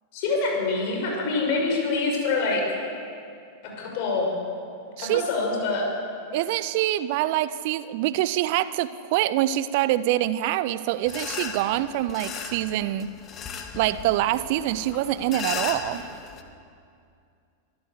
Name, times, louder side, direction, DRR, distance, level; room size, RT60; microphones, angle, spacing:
voice 1, 0.1-2.8 3.6-4.3 5.0-5.9, left 3 dB, 45° left, 0 dB, 6.6 m, -25 dB
voice 2, 6.3-13.1 13.7-16.0, right 14 dB, 50° right, 16 dB, 0.6 m, -25 dB
sound 1, 11.1-16.4, left 7 dB, 30° left, 2.0 m, -36 dB
24.5 x 14.5 x 8.1 m, 2.5 s
figure-of-eight pair, 90°, 0 cm